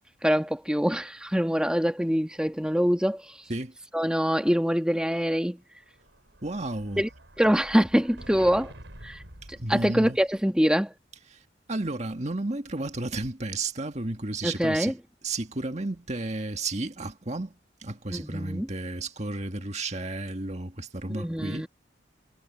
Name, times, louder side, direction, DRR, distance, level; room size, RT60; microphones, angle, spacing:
voice 1, 0.2-3.2 3.9-5.6 7.0-7.1 7.4-8.7 9.0-9.2 9.7-10.9 14.4-14.9 18.1-18.7 21.1-21.7, equal, 5° right, 1.7 m, -24 dB
Explosion, 5.7-10.4, right 1 dB, 75° right, 5.5 m, -48 dB
voice 2, 6.4-7.0 9.5-10.2 11.3-11.4 11.7-15.0 15.2-17.5 17.8-21.7, right 2 dB, 35° right, 1.8 m, -32 dB
head